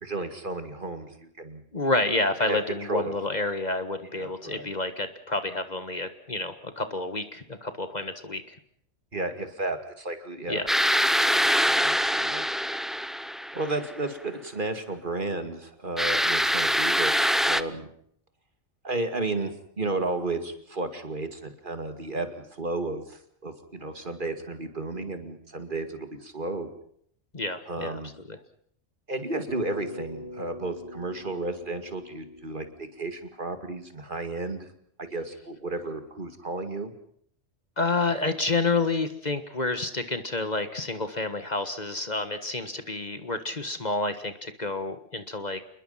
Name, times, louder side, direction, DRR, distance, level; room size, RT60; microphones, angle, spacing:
voice 1, 0.0-1.6 2.5-3.2 4.1-4.7 9.1-10.7 11.2-12.4 13.5-17.9 18.8-26.7 27.7-28.1 29.1-34.7 35.0-36.9, right 2 dB, 45° right, 8 dB, 2.5 m, -33 dB
voice 2, 1.7-8.6 10.5-10.6 27.3-28.0 28.3-28.4 37.8-45.6, left 2 dB, 35° left, 10 dB, 1.6 m, -29 dB
sound 1, 10.7-13.9 16.0-17.6, equal, ahead, 0.6 m, -24 dB
Bass guitar, 29.5-33.8, left 1 dB, 75° left, 6.8 m, -43 dB
28.5 x 21.0 x 5.7 m, 0.66 s
omnidirectional pair, 1.2 m